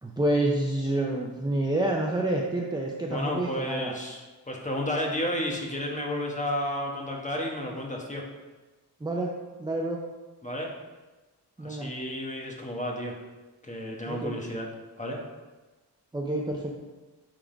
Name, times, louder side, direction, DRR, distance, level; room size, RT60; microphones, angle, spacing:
voice 1, 0.0-3.9 9.0-9.3 9.6-10.0 11.6-11.9 14.1-14.4 16.1-16.8, right 1 dB, 10° right, -1 dB, 0.5 m, -28 dB
voice 2, 3.1-8.2 10.4-10.7 11.6-13.2 13.6-14.7 15.0-15.2, left 1 dB, 20° left, -1 dB, 1.2 m, -32 dB
9.0 x 3.7 x 5.0 m, 1.2 s
wide cardioid pair, 145°, 41 cm